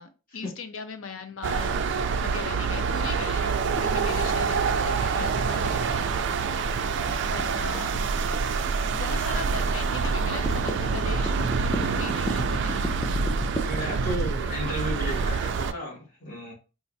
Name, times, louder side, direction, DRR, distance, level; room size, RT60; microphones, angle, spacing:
voice 1, 0.0-6.1 7.3-8.1 8.6-13.0, left 5 dB, 65° left, 0.5 m, -39 dB
sound 1, 1.4-15.7, right 5 dB, 55° right, 0.3 m, -26 dB
sound 2, 3.7-15.3, equal, 10° left, 0.4 m, -36 dB
voice 2, 6.4-6.9 13.6-16.5, right 1 dB, 40° left, 1.8 m, -34 dB
4.1 x 2.5 x 2.6 m
head